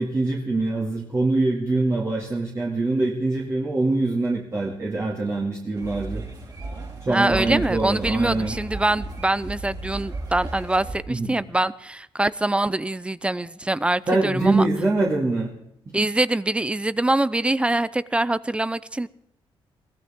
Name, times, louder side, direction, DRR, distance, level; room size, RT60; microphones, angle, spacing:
voice 1, 0.0-6.2 7.0-8.6 11.1-11.3 14.1-15.5, right 2 dB, 30° right, -3 dB, 2.4 m, -24 dB
sound 1, 5.8-10.9, right 2 dB, 45° right, 6.9 m, -35 dB
voice 2, 7.1-14.6 15.9-19.1, right 2 dB, 10° right, 17 dB, 0.5 m, -24 dB
22.0 x 16.5 x 3.7 m, 0.78 s
cardioid pair, 120°, 10 cm